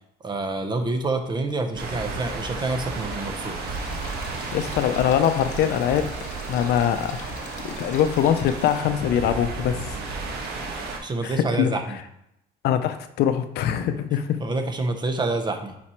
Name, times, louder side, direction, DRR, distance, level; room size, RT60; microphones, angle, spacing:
voice 1, 0.2-3.8 10.6-10.7 11.0-12.0 14.4-15.7, right 3 dB, 25° right, 6 dB, 0.8 m, -27 dB
sound 1, 1.7-11.0, right 3 dB, 70° right, 1.4 m, -33 dB
sound 2, 3.6-8.8, left 5 dB, 50° left, 1.0 m, -45 dB
voice 2, 4.5-6.1 6.5-10.0 11.2-11.7 12.6-14.4, left 9 dB, 75° left, 10 dB, 0.5 m, -23 dB
6.0 x 4.2 x 4.3 m, 0.81 s
cardioid pair, 110°, 17 cm